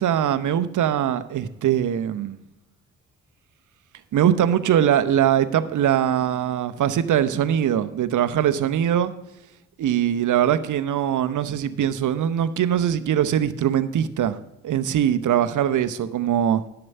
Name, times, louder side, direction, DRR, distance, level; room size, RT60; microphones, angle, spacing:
voice 1, 0.0-2.4 4.1-9.1 9.8-14.4 14.6-16.6, right 10 dB, 55° right, 13 dB, 0.8 m, -22 dB
11.0 x 7.0 x 5.3 m, 0.89 s
hypercardioid pair, 40°, 36 cm